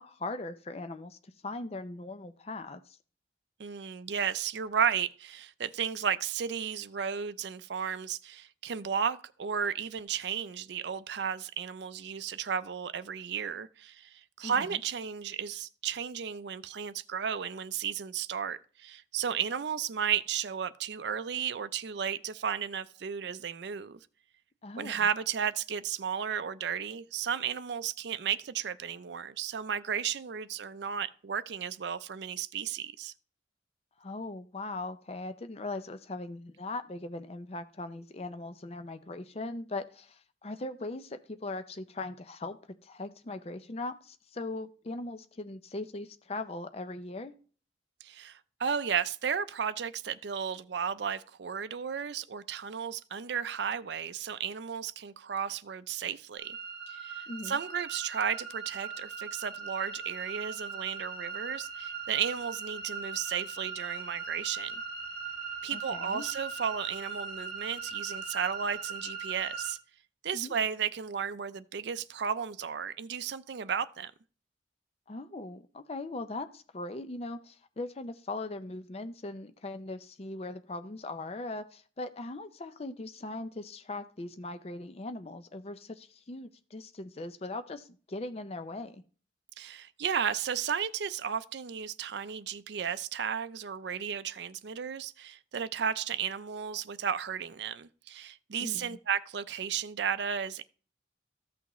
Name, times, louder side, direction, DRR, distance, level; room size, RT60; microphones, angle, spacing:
voice 1, 0.0-3.0 14.4-14.8 24.6-25.1 34.0-42.6 42.8-47.3 57.3-57.6 65.7-66.2 70.3-70.6 75.1-89.0 98.6-99.0, left 2 dB, 35° left, 0.5 m, -40 dB
voice 2, 3.6-24.0 24.8-33.1 48.0-56.6 56.9-64.7 65.6-69.8 70.2-74.1 89.6-100.6, right 7 dB, 65° right, 0.4 m, -34 dB
sound 1, 56.4-69.7, right 5 dB, 60° left, 4.9 m, -40 dB
14.0 x 5.9 x 3.0 m
head